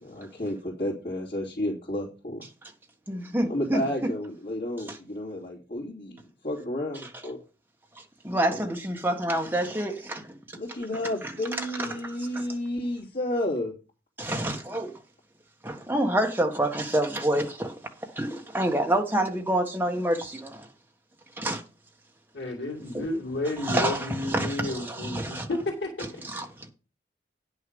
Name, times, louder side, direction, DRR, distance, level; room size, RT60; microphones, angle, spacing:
voice 1, 0.0-2.5 3.5-7.4 10.5-13.7, left 1 dB, 60° left, 3.0 m, -31 dB
voice 2, 3.1-4.1 4.9-5.0 7.9-10.4 11.2-12.4 14.2-14.9 15.6-20.7 21.4-21.6 22.9-23.1 23.6-25.5 26.2-26.7, right 1 dB, 10° right, 1.4 m, -28 dB
voice 3, 22.3-26.2, left 2 dB, 85° left, 2.5 m, -32 dB
10.0 x 6.5 x 5.3 m
head